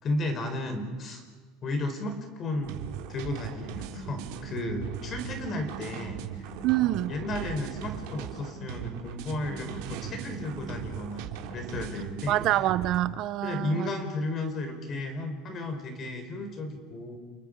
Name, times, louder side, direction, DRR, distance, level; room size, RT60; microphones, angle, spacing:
voice 1, 0.0-1.2 1.6-2.8 3.1-6.4 7.1-12.4 13.4-17.2, left 2 dB, 30° left, 4.2 m, -34 dB
sound 1, 2.6-13.0, right 8 dB, 70° right, 2.9 m, -39 dB
voice 2, 6.6-7.1 12.3-13.9, right 14 dB, 45° right, 0.6 m, -26 dB
30.0 x 29.0 x 5.2 m
cardioid pair, 165°, 0 cm